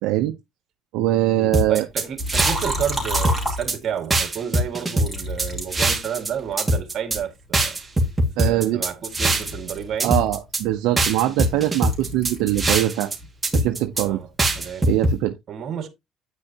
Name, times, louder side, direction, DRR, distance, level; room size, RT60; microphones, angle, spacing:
voice 1, 0.0-0.3 0.9-1.8 8.4-8.8 10.0-13.1 13.5-14.2 14.8-15.3, right 14 dB, 85° right, 0.7 m, -22 dB
voice 2, 1.4-7.8 8.4-10.2 14.0-14.3 14.5-14.9 15.5-15.9, right 8 dB, 50° right, 1.9 m, -31 dB
sound 1, 1.5-2.9 3.1-3.8 4.1-6.3 6.6-7.2 7.5-9.7 10.0-10.6 11.0-13.1 13.4-14.0 14.4-15.1, right 1 dB, 15° right, 2.1 m, -22 dB
Liquid, 2.2-4.2 5.0-6.5 7.1-8.8 9.1-12.8 13.1-14.7, equal, 5° left, 3.9 m, -31 dB
9.2 x 6.3 x 2.9 m
cardioid pair, 110°, 0 cm